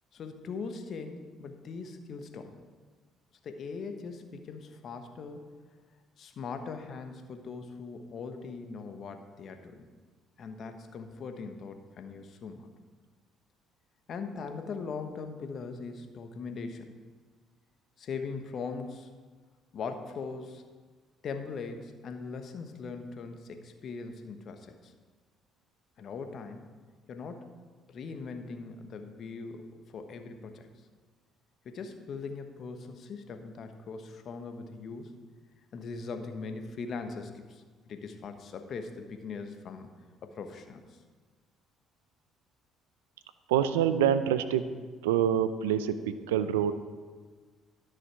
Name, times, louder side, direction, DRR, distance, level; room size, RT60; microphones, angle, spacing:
voice 1, 0.1-2.5 3.4-5.5 6.2-9.8 10.4-12.7 14.1-16.9 18.0-19.1 19.7-20.6 21.2-24.9 26.0-26.6 27.1-27.6 27.9-29.6 29.9-30.7 31.6-35.1 35.7-39.9 40.2-41.0, left 4 dB, 60° left, 7 dB, 1.1 m, -40 dB
voice 2, 43.5-44.7 45.0-46.7, right 9 dB, 90° right, 12 dB, 0.5 m, -26 dB
12.5 x 6.3 x 4.6 m, 1.4 s
hypercardioid pair, 55°, 0 cm